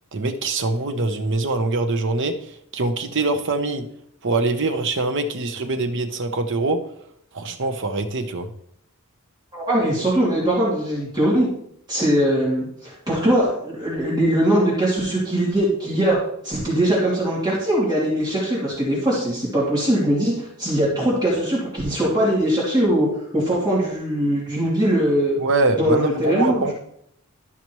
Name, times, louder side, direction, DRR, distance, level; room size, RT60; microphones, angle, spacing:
voice 1, 0.1-3.8 4.2-6.8 7.3-8.5 25.4-26.7, right 3 dB, 60° right, 7 dB, 0.9 m, -23 dB
voice 2, 9.5-11.5 11.9-16.2 16.4-23.1 23.3-25.4 25.8-26.7, right 1 dB, 20° right, -6 dB, 2.8 m, -21 dB
12.5 x 5.8 x 3.1 m, 0.71 s
head